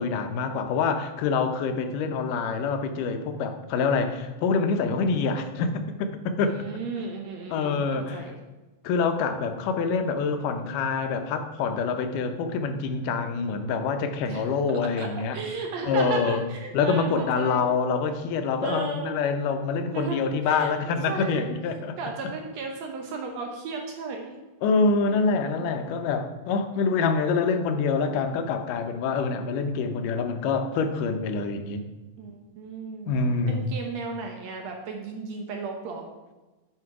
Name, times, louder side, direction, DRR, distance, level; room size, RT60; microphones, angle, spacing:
voice 1, 0.0-6.6 7.5-8.3 8.8-15.4 15.8-16.4 16.7-22.0 24.6-31.8 33.1-33.7, left 4 dB, 85° left, 7 dB, 2.3 m, -26 dB
voice 2, 6.4-8.4 14.3-14.5 15.0-15.1 15.3-17.8 18.6-19.2 19.9-20.7 21.1-21.4 22.0-24.3 25.1-25.5 25.8-26.0 32.2-36.1, right 4 dB, 65° right, 2 dB, 1.9 m, -35 dB
11.0 x 4.9 x 4.8 m, 1.1 s
omnidirectional pair, 3.7 m